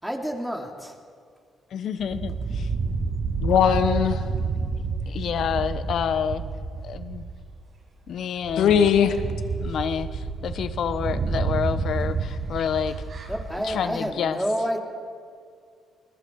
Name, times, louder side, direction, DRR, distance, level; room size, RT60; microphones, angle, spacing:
voice 1, 0.0-0.9 13.3-14.8, equal, 5° right, 2 dB, 3.3 m, -29 dB
voice 2, 1.7-2.7 5.1-6.4 6.8-7.2 8.1-9.2 9.5-12.9 13.6-14.4, left 8 dB, 65° left, 11 dB, 1.2 m, -29 dB
sound 1, 2.0-7.6 8.1-8.2 8.4-14.0, right 4 dB, 55° right, 6.1 m, -29 dB
voice 3, 3.4-4.2 8.6-9.2, left 8 dB, 85° left, 6 dB, 2.0 m, -19 dB
28.0 x 21.5 x 4.8 m, 2.2 s
cardioid pair, 90°, 0 cm